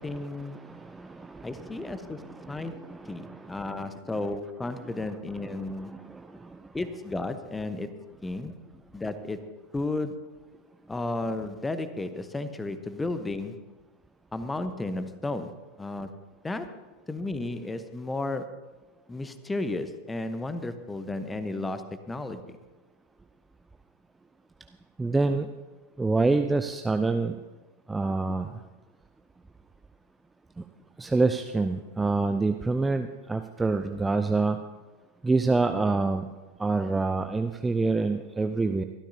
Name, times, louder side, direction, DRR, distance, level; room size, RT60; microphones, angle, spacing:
voice 1, 0.0-0.6 1.4-2.2 2.5-2.8 3.1-6.0 6.7-7.9 8.2-8.5 8.9-9.5 9.7-10.3 10.9-13.6 14.3-16.2 16.4-16.8 17.1-18.6 19.1-22.6, left 2 dB, 10° left, 11 dB, 1.0 m, -33 dB
voice 2, 0.7-1.9 2.3-3.7 5.8-5.9 25.0-25.5 26.0-27.4 27.9-28.5 31.0-34.6 35.2-36.2 36.6-38.8, right 3 dB, 10° right, 7 dB, 0.5 m, -26 dB
24.0 x 13.0 x 2.8 m, 1.2 s
figure-of-eight pair, 90°, 0 cm